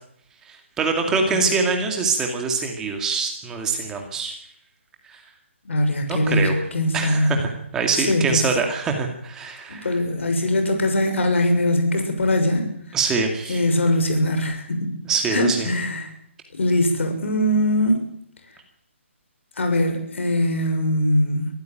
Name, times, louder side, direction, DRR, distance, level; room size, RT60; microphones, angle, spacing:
voice 1, 0.5-4.3 5.1-5.2 6.1-6.6 6.9-10.0 12.9-13.6 15.0-15.7, right 4 dB, 10° right, 3 dB, 2.3 m, -24 dB
voice 2, 1.1-1.4 5.7-7.3 8.0-8.2 9.8-12.6 13.5-14.9 15.3-16.1 16.5-18.0 19.6-21.5, left 1 dB, 65° left, 6 dB, 6.8 m, -21 dB
25.0 x 15.0 x 9.3 m, 0.71 s
hypercardioid pair, 170°, 7 cm